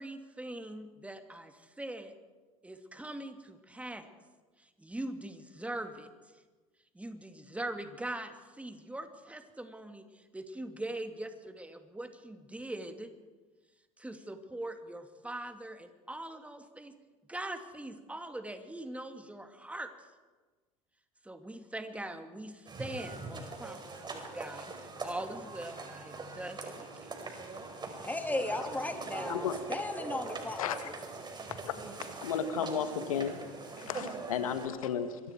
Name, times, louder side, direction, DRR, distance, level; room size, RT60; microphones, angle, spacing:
voice 1, 0.0-2.1 2.6-4.1 4.6-6.1 6.9-13.1 14.0-16.9 17.3-19.9 21.2-24.7 25.0-27.1, right 1 dB, 5° right, 2.4 m, -42 dB
sound 1, 22.7-34.7, right 3 dB, 25° right, 5.0 m, -42 dB
voice 2, 28.0-30.9, left 2 dB, 10° left, 3.0 m, -36 dB
voice 3, 30.6-30.9 31.7-31.8 32.2-33.3 33.8-35.2, left 8 dB, 75° left, 2.0 m, -33 dB
26.5 x 23.0 x 4.7 m
figure-of-eight pair, 75°, 18 cm